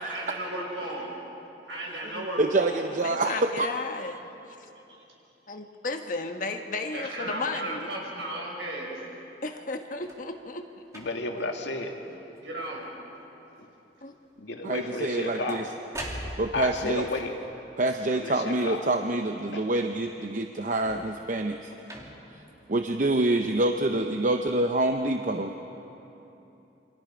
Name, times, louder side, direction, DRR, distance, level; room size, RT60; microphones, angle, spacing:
voice 1, 0.1-1.1 1.7-2.8 4.9-5.0 6.9-8.9 12.4-12.9 14.9-15.0 23.4-23.5 24.2-24.3 25.4-26.1, right 1 dB, 80° right, -2 dB, 6.1 m, -36 dB
voice 2, 2.4-3.7 14.6-15.6 16.4-17.1 17.8-21.6 22.7-25.5, right 2 dB, 45° right, 6 dB, 0.7 m, -26 dB
voice 3, 3.0-4.2 4.6-4.7 5.5-7.9 9.4-10.6 14.0-14.1, left 3 dB, 45° left, 5 dB, 1.3 m, -34 dB
sound 1, 9.9-10.3 10.9-11.4 12.0-12.4 12.7-13.2 14.9-16.8 20.6-21.2 21.8-22.4 23.2-23.3, right 1 dB, 20° right, 2.5 m, -42 dB
voice 4, 10.9-11.9 14.4-15.7 16.5-17.4 18.1-18.8 19.5-19.7 21.8-21.9, left 2 dB, 80° left, 2 dB, 2.1 m, -32 dB
28.5 x 24.5 x 5.1 m, 3.0 s
head